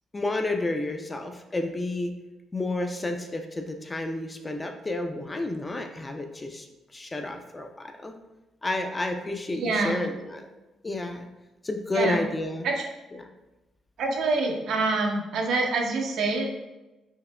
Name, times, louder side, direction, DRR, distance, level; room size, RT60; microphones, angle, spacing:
voice 1, 0.1-2.1 2.5-6.7 6.9-8.1 8.6-10.5 10.8-11.3 11.6-12.7 13.2-13.3, left 2 dB, 20° left, 5 dB, 0.4 m, -30 dB
voice 2, 9.5-10.1 11.9-12.3 12.6-12.9 14.0-16.5, right 3 dB, 75° right, 1 dB, 0.6 m, -26 dB
4.6 x 2.7 x 2.2 m, 1.0 s
cardioid pair, 90°, 0 cm